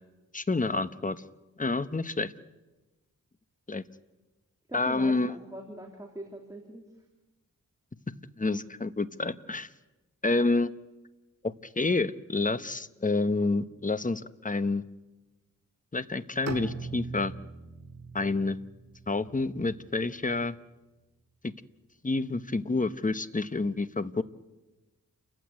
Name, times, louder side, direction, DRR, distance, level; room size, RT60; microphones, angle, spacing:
voice 1, 0.3-1.2 1.6-2.3 3.7-3.8 4.7-5.3 8.4-9.7 10.2-10.7 11.4-14.8 15.9-17.3 18.1-18.6 19.1-20.6 21.4-21.5 22.0-24.2, left 3 dB, 25° left, 12 dB, 1.0 m, -28 dB
voice 2, 4.7-6.9, right 1 dB, 10° right, 1 dB, 3.3 m, -42 dB
Bowed string instrument, 16.5-20.4, right 4 dB, 50° right, 2.3 m, -41 dB
29.5 x 15.5 x 9.5 m, 1.1 s
wide cardioid pair, 80°, 33 cm